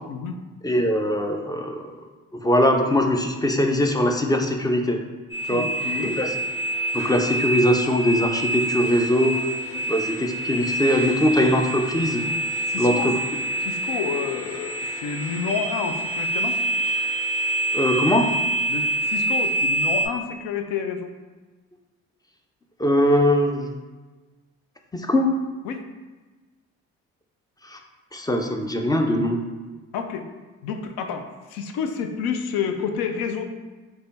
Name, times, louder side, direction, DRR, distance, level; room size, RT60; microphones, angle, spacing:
voice 1, 0.6-1.9 2.4-5.0 5.5-5.7 6.0-6.3 6.9-9.4 9.9-12.2 12.8-13.2 17.7-18.3 22.8-23.7 24.9-25.3 27.7-27.8 28.1-29.4, left 1 dB, 10° left, 4 dB, 0.4 m, -21 dB
sound 1, 5.3-20.1, right 1 dB, 35° left, 1.3 m, -26 dB
voice 2, 5.5-6.2 9.7-9.8 11.3-11.5 12.7-13.1 13.6-16.6 18.7-21.1 25.6-25.8 29.9-30.3 30.6-33.4, left 6 dB, 70° left, 6 dB, 0.5 m, -29 dB
3.3 x 2.2 x 3.9 m, 1.3 s
hypercardioid pair, 50°, 37 cm